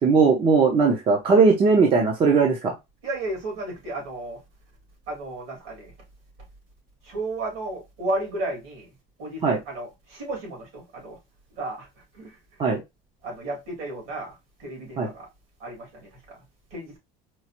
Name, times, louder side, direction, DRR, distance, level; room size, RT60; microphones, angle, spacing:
voice 1, 0.0-2.7 9.4-9.6 12.6-12.8 15.0-15.1, right 4 dB, 25° right, 0.6 m, -19 dB
voice 2, 3.0-4.4 5.1-5.9 7.0-8.9 9.2-11.2 11.5-12.7 13.2-15.3 15.6-16.4 16.7-17.0, right 2 dB, 65° right, 2.5 m, -33 dB
4.6 x 2.4 x 2.8 m
cardioid pair, 175°, 20 cm